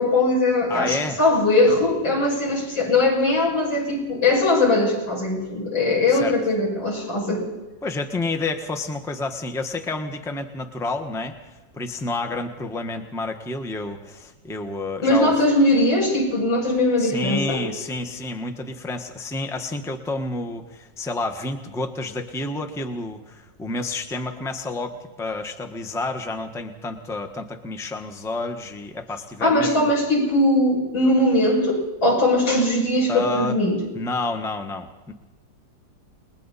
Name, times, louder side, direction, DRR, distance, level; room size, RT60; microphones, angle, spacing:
voice 1, 0.0-7.4 15.0-17.6 29.4-33.8, left 2 dB, 85° left, -3 dB, 7.3 m, -20 dB
voice 2, 0.7-1.2 6.1-6.4 7.8-15.3 17.0-29.9 33.1-33.6 33.9-35.1, left 2 dB, ahead, 6 dB, 1.0 m, -29 dB
29.5 x 21.0 x 4.2 m, 1.2 s
omnidirectional pair, 2.0 m